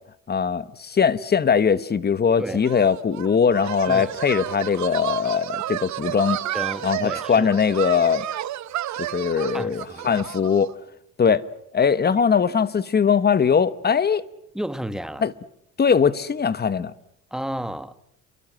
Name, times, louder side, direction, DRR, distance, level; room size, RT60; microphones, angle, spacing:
voice 1, 0.3-6.4 6.8-8.3 9.0-10.7 11.2-11.4 11.7-14.2 15.2-15.3 15.8-16.9, left 6 dB, 30° left, 1.3 m, -21 dB
sound 1, 2.6-10.7, right 13 dB, 60° right, 1.2 m, -31 dB
voice 2, 6.5-7.5 9.5-10.2 11.3-11.4 12.1-12.2 14.5-15.3 17.3-17.9, right 1 dB, ahead, 1.4 m, -32 dB
29.0 x 24.0 x 7.6 m
cardioid pair, 105°, 32 cm